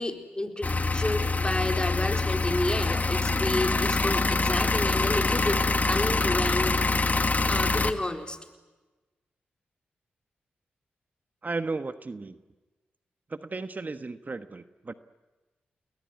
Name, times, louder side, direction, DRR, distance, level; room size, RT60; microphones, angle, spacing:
voice 1, 0.0-8.4, left 1 dB, 20° left, 4 dB, 4.3 m, -31 dB
sound 1, 0.6-7.9, left 3 dB, 40° left, 1.9 m, -25 dB
voice 2, 11.4-12.4 13.3-14.9, right 3 dB, 40° right, 10 dB, 1.3 m, -34 dB
29.5 x 20.5 x 9.6 m, 1.2 s
supercardioid pair, 40°, 4 cm